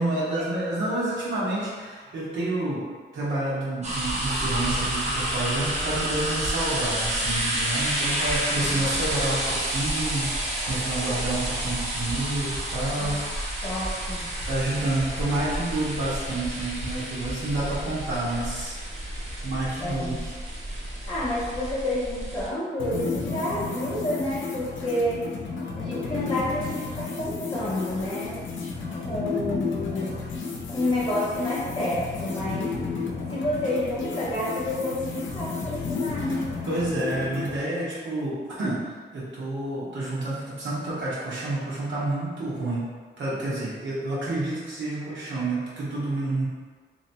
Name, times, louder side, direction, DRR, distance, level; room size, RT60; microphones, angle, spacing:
voice 1, 0.0-2.8 3.1-13.2 13.5-13.6 14.5-18.8 19.1-20.3 32.9-33.0 36.7-42.8 43.2-46.5, right 2 dB, 80° right, -8 dB, 1.2 m, -29 dB
sound 1, 3.8-22.5, right 1 dB, 35° right, 0.6 m, -30 dB
voice 2, 8.5-8.9 13.0-13.2 13.6-14.2 19.8-20.2 21.1-25.3 25.8-28.4 29.1-30.2 30.7-33.0 33.3-36.5, left 1 dB, 25° left, -9 dB, 0.5 m, -29 dB
sound 2, 22.8-37.6, left 4 dB, 85° left, 0.6 m, -32 dB
3.1 x 3.1 x 2.8 m, 1.6 s
wide cardioid pair, 170°, 19 cm